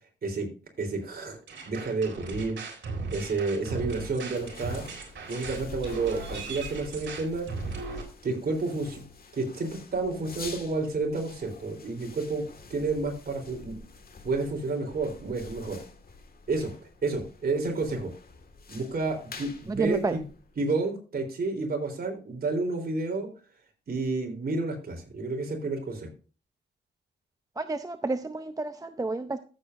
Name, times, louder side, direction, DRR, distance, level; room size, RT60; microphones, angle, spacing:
voice 1, 0.8-1.4 1.7-2.6 3.1-4.8 5.3-7.5 8.2-9.0 9.3-12.4 12.7-13.8 14.2-15.8 16.5-16.7 17.0-18.1 18.7-20.2 20.6-23.3 23.9-26.1, right 3 dB, 55° right, 3.6 m, -30 dB
sound 1, 1.5-8.0, right 4 dB, 75° right, 3.7 m, -37 dB
sound 2, 2.8-20.7, left 4 dB, 50° left, 1.9 m, -47 dB
voice 2, 19.7-20.2 27.6-29.4, right 3 dB, 20° right, 0.6 m, -30 dB
14.5 x 7.8 x 2.6 m
cardioid pair, 100°, 19 cm